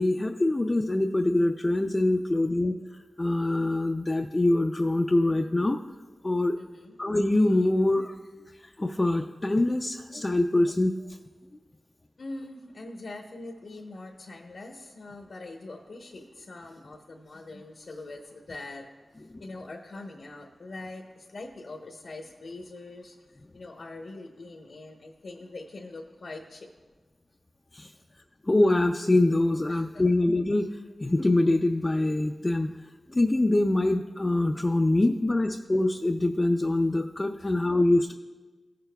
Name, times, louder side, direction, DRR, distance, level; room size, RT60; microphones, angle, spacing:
voice 1, 0.0-2.8 3.2-5.8 6.2-6.6 7.0-8.1 8.6-10.9 27.7-27.9 28.5-32.7 33.1-38.1, left 2 dB, 30° left, 2 dB, 0.4 m, -24 dB
voice 2, 6.6-7.0 12.2-26.7 28.0-28.1 29.7-30.0 37.4-37.5, left 2 dB, 75° left, 1 dB, 0.8 m, -43 dB
15.5 x 6.8 x 2.2 m, 1.3 s
wide cardioid pair, 65°, 0 cm